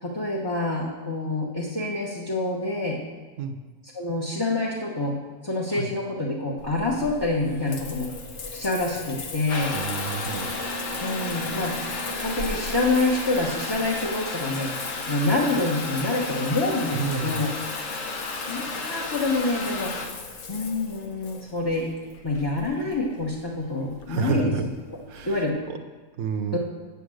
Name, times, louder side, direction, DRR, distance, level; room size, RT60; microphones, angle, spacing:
voice 1, 0.0-3.0 3.9-5.2 5.4-8.1 8.5-9.7 11.0-11.8 12.2-17.5 18.5-19.9 20.5-21.9 22.2-24.5 24.9-25.0 25.2-25.6 26.5-26.6, left 2 dB, 20° left, -3 dB, 1.0 m, -27 dB
Water tap faucet / Bathtub (filling or washing) / Trickle dribble, 6.6-25.5, left 3 dB, 70° left, 1.3 m, -33 dB
voice 2, 9.7-10.5 16.9-17.4 24.1-24.7 25.1-25.8 26.2-26.6, right 5 dB, 70° right, 7 dB, 1.1 m, -29 dB
8.3 x 7.7 x 6.3 m, 1.3 s
omnidirectional pair, 1.4 m